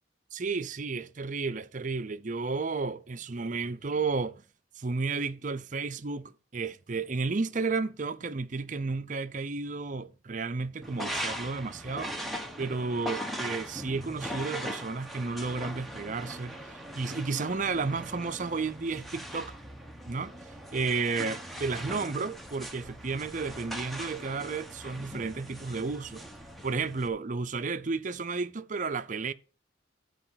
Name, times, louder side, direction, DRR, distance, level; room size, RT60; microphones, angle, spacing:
voice 1, 0.3-4.4 4.8-12.1 12.6-19.5 20.1-20.3 20.7-26.3 26.6-29.3, right 4 dB, 40° right, 0.6 m, -32 dB
sound 1, 10.8-27.1, equal, ahead, 1.0 m, -40 dB
12.5 x 4.8 x 5.7 m
head